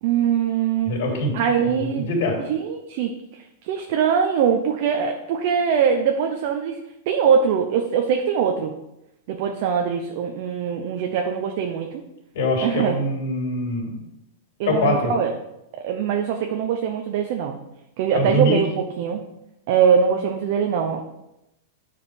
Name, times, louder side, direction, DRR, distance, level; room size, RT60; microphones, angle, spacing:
voice 1, 0.0-0.9 1.3-2.1 2.4-3.1 3.6-6.8 7.1-8.7 9.3-12.0 12.6-13.0 14.6-15.3 15.8-17.6 18.0-19.2 19.7-21.0, right 7 dB, 45° right, 3 dB, 0.8 m, -22 dB
voice 2, 0.9-1.3 2.1-2.3 12.3-14.0 14.6-15.1 18.1-18.6, left 1 dB, 60° left, 0 dB, 3.4 m, -23 dB
9.7 x 5.0 x 5.2 m, 0.89 s
supercardioid pair, 165°, 0 cm